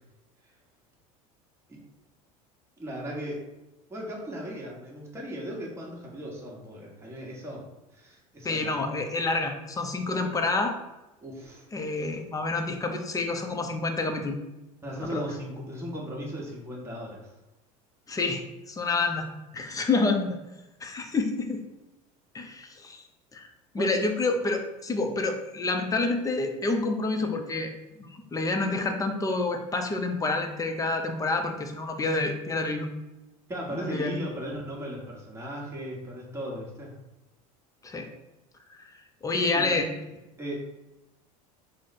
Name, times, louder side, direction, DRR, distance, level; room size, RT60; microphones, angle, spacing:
voice 1, 2.8-3.4 3.9-7.6 7.9-8.8 11.2-11.6 14.8-17.3 23.8-23.9 33.5-36.9 39.3-39.7 40.4-40.6, equal, 15° right, -3 dB, 1.3 m, -37 dB
voice 2, 8.4-10.7 11.7-14.4 15.1-15.2 18.1-19.3 19.5-20.4 20.8-21.6 22.3-23.0 23.3-23.5 23.7-27.7 28.0-32.9 33.7-34.1 37.8-38.1 39.2-39.9, left 3 dB, 20° left, 5 dB, 0.6 m, -28 dB
4.5 x 2.2 x 4.1 m, 0.98 s
supercardioid pair, 95°, 18 cm